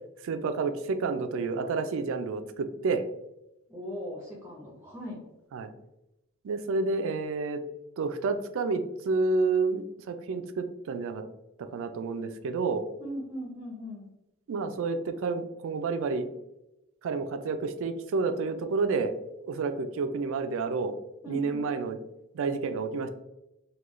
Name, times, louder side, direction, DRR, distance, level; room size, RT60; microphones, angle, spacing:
voice 1, 0.2-3.0 5.5-5.7 6.4-7.6 8.0-11.2 11.7-12.8 14.5-16.3 17.0-19.1 19.4-21.0 21.3-22.0 22.3-23.1, right 4 dB, 65° right, 9 dB, 0.3 m, -29 dB
voice 2, 3.7-5.2 13.0-14.1 21.2-21.6, equal, 10° right, -3 dB, 0.7 m, -39 dB
3.6 x 2.3 x 3.0 m, 0.92 s
head